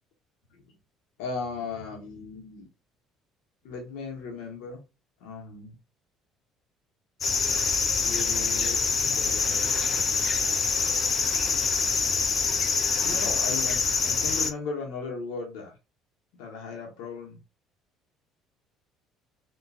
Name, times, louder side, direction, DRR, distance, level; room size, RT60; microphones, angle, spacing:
voice 1, 1.2-2.7 3.6-4.8 5.2-5.8 8.0-9.7 13.0-15.7 16.4-17.4, left 4 dB, 60° left, 0 dB, 0.9 m, -37 dB
sound 1, 7.2-14.5, left 5 dB, 40° left, 0.4 m, -25 dB
3.7 x 2.3 x 2.4 m, 0.30 s
figure-of-eight pair, 55°, 0 cm